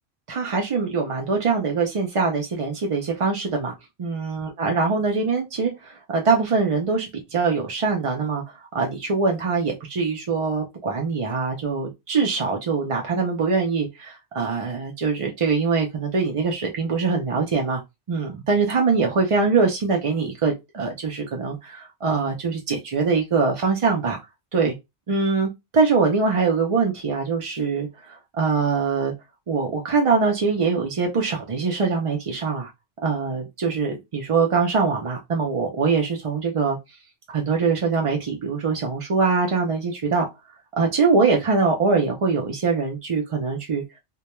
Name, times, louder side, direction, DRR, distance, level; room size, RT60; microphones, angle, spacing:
voice 1, 0.3-3.7 4.0-17.8 18.1-24.2 24.5-24.8 25.1-27.9 28.3-29.1 29.5-32.7 33.0-36.8 37.3-40.3 40.8-43.8, right 4 dB, 55° right, 0.3 m, -23 dB
2.2 x 2.2 x 2.9 m
omnidirectional pair, 1.2 m